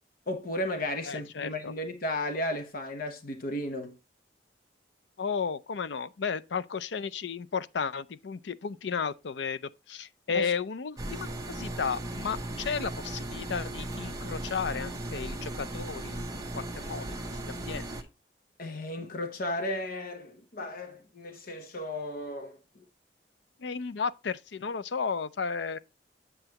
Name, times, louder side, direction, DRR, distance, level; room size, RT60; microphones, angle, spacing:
voice 1, 0.3-3.9 10.3-10.5 18.6-22.8, left 1 dB, 55° left, 1.0 m, -34 dB
voice 2, 1.1-1.7 5.2-16.2 16.5-17.2 17.5-17.9 23.6-25.8, left 6 dB, 75° left, 0.5 m, -33 dB
sound 1, 11.0-18.0, right 1 dB, 20° right, 0.9 m, -37 dB
7.9 x 7.8 x 2.9 m
head